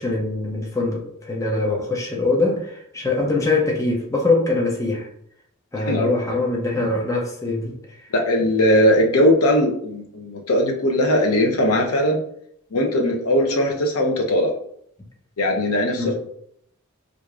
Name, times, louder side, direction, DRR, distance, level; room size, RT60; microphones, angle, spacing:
voice 1, 0.0-5.1 5.7-8.0 15.9-16.1, left 2 dB, 15° left, 0.5 m, -23 dB
voice 2, 5.8-6.4 8.1-12.2 12.7-14.5 15.4-16.1, equal, 85° left, 0.7 m, -19 dB
4.6 x 2.6 x 2.4 m
head